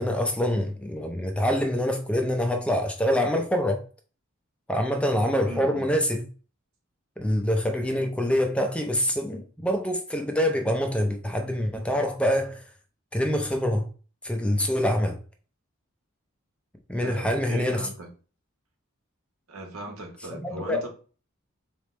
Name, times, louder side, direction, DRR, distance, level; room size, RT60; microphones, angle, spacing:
voice 1, 0.0-3.8 4.7-6.2 7.2-12.6 13.1-13.9 14.2-15.2 16.9-17.9 20.3-20.9, equal, 5° left, 0.4 m, -25 dB
voice 2, 5.4-5.9 17.0-18.1 19.5-20.9, right 1 dB, 90° right, 1.3 m, -39 dB
4.0 x 3.3 x 3.2 m
head